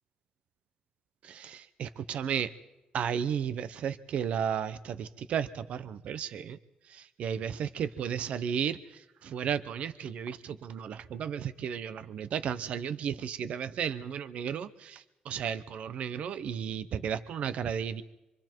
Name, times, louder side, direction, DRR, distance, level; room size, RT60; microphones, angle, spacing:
voice 1, 1.2-2.5 2.9-6.6 6.9-18.0, right 8 dB, 60° right, 14 dB, 0.8 m, -34 dB
26.5 x 23.5 x 4.6 m, 0.99 s
cardioid pair, 145°, 2 cm